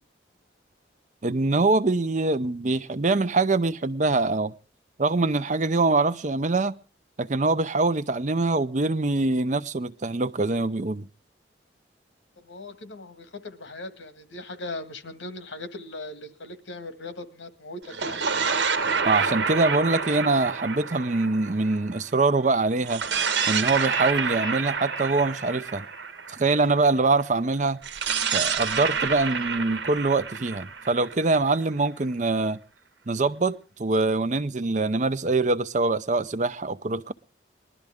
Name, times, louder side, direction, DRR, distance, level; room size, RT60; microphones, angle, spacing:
voice 1, 1.2-4.5 5.0-6.7 7.2-11.1 19.0-23.0 23.5-25.9 26.3-27.8 28.3-32.6 33.1-37.1, right 3 dB, 40° right, 0.6 m, -24 dB
voice 2, 12.4-18.2, left 2 dB, 90° left, 1.8 m, -39 dB
sound 1, 17.8-22.2 22.8-26.8 27.8-31.6, right 5 dB, 70° right, 1.3 m, -28 dB
20.5 x 12.0 x 3.6 m
head